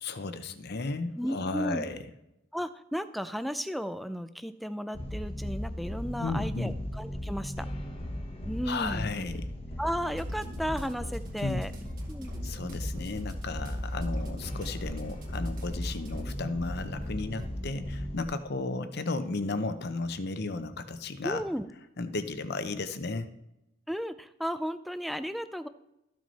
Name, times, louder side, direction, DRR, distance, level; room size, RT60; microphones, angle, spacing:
voice 1, 0.0-2.0 6.2-6.8 8.7-9.5 11.4-11.6 12.4-21.4 22.0-23.3, left 3 dB, 55° left, 10 dB, 0.7 m, -34 dB
voice 2, 1.2-1.9 2.5-7.7 8.5-9.1 9.8-11.7 12.1-12.3 21.2-21.7 23.9-25.7, equal, ahead, 11 dB, 0.4 m, -34 dB
sound 1, 4.9-18.2, left 1 dB, 30° left, 1.0 m, -36 dB
sound 2, 10.0-17.4, right 1 dB, 45° right, 2.1 m, -48 dB
14.0 x 6.2 x 4.1 m, 0.88 s
head